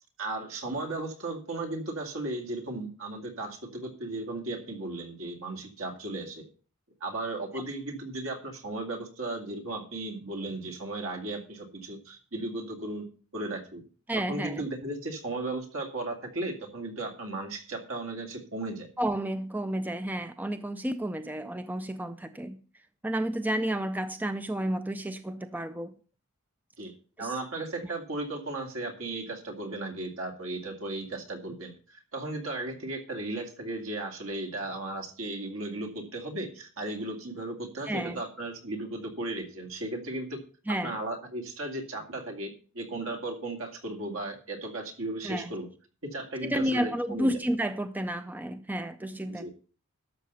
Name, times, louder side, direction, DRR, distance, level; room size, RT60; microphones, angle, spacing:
voice 1, 0.2-6.5 7.0-13.1 13.3-13.8 14.3-18.9 26.8-26.9 27.2-40.4 40.7-45.7 46.1-47.3 49.3-49.5, right 2 dB, 70° right, 2.3 m, -36 dB
voice 2, 14.1-14.6 19.0-22.6 23.0-25.9 27.2-27.4 37.9-38.2 40.7-41.0 45.2-45.5 46.4-49.5, right 1 dB, 10° right, 0.4 m, -31 dB
12.0 x 6.8 x 5.5 m
head